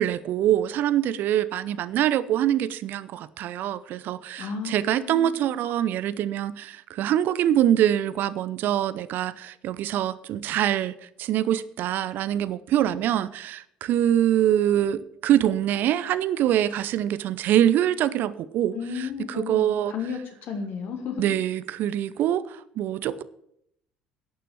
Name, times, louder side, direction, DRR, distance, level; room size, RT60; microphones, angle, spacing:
voice 1, 0.0-19.9 21.2-23.2, right 11 dB, 50° right, 0.6 m, -24 dB
voice 2, 4.4-5.4 18.7-21.3, left 6 dB, 50° left, 2.3 m, -33 dB
11.5 x 6.8 x 7.3 m
figure-of-eight pair, 55°, 4 cm